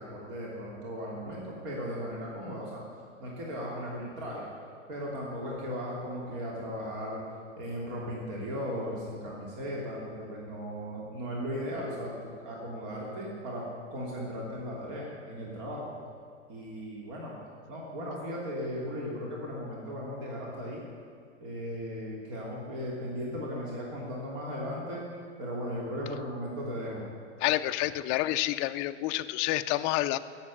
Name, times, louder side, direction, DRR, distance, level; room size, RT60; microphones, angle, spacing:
voice 1, 0.0-2.8 3.2-4.5 4.9-7.2 7.6-15.9 16.5-17.3 17.7-20.8 21.4-25.1 25.4-27.0, equal, 50° right, -3 dB, 3.2 m, -37 dB
voice 2, 27.4-30.2, left 15 dB, 35° left, 10 dB, 0.5 m, -28 dB
16.5 x 7.5 x 7.1 m, 2.1 s
figure-of-eight pair, 95°, 37 cm